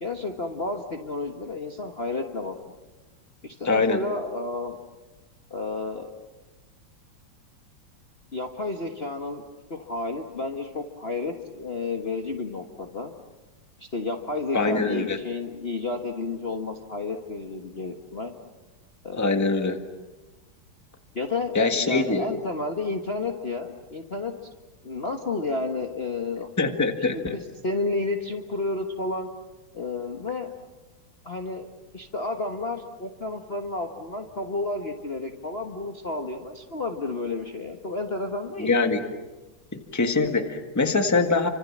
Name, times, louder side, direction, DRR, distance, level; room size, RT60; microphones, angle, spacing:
voice 1, 0.0-2.7 3.4-4.7 5.5-6.1 8.3-9.4 9.7-13.1 13.8-18.3 19.0-19.4 21.1-24.3 24.8-26.5 27.1-29.3 29.7-30.5 31.2-31.6 31.9-38.9, left 3 dB, 30° left, 3 dB, 1.4 m, -31 dB
voice 2, 3.6-4.0 14.5-15.2 19.1-19.8 21.5-22.3 26.6-27.4 38.6-39.0 39.9-41.5, left 3 dB, 10° left, 6 dB, 1.5 m, -23 dB
30.0 x 25.5 x 7.4 m, 1.2 s
omnidirectional pair, 2.4 m